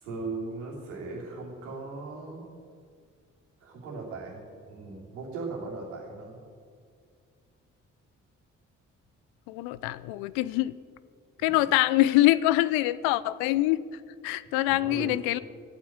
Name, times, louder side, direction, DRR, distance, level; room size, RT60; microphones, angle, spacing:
voice 1, 0.0-2.4 3.6-4.4 4.7-6.4 11.5-11.6 14.6-15.1, right 3 dB, 85° right, -3 dB, 3.0 m, -38 dB
voice 2, 9.5-10.7 11.4-13.8 14.2-15.4, left 16 dB, 75° left, 17 dB, 0.6 m, -24 dB
14.5 x 8.7 x 8.7 m, 2.2 s
hypercardioid pair, 40°, 36 cm